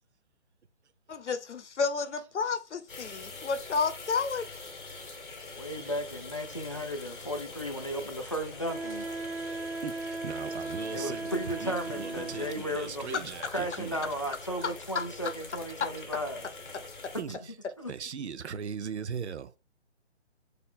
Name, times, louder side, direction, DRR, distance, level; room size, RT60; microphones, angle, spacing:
voice 1, 1.1-4.7 14.9-15.0 15.8-15.9, left 5 dB, 80° left, 0.8 m, -31 dB
sound 1, 2.9-17.2, left 3 dB, 45° left, 1.1 m, -44 dB
voice 2, 4.9-5.2 5.8-5.9 9.8-14.1 17.2-17.5 17.9-19.5, right 7 dB, 70° right, 0.7 m, -39 dB
voice 3, 5.6-9.1 10.9-13.2 13.5-16.5 17.8-17.9, equal, 30° left, 0.4 m, -35 dB
Wind instrument woodwind instrument, 8.7-12.8, right 3 dB, 20° right, 1.8 m, -37 dB
4.0 x 2.7 x 4.1 m
hypercardioid pair, 165°, 35 cm